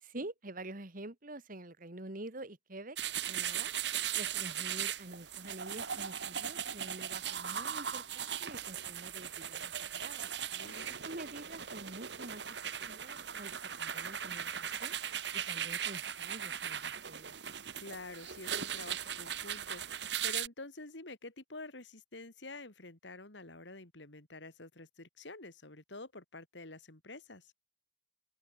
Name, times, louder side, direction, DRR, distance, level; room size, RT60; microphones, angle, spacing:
voice 1, 0.0-3.0 3.3-3.7 4.1-10.3 11.0-12.4 12.9-15.0 15.3-17.4, right 2 dB, 50° right, 1.9 m, -47 dB
sound 1, 3.0-20.5, right 9 dB, 70° right, 2.2 m, -38 dB
voice 2, 10.5-10.9 17.8-19.8 20.2-27.5, left 2 dB, 75° left, 3.3 m, -48 dB
open air
head